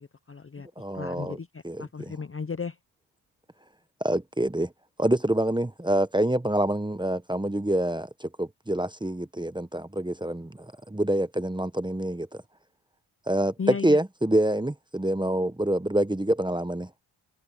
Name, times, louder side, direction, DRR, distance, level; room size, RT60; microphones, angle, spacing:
voice 1, 0.0-0.7 0.9-2.8 13.6-14.0, left 5 dB, 25° left, 0.6 m, -35 dB
voice 2, 0.8-1.4 1.6-2.1 4.0-4.7 5.0-12.4 13.3-16.9, right 1 dB, 10° right, 0.9 m, -26 dB
cardioid pair, 75°, 49 cm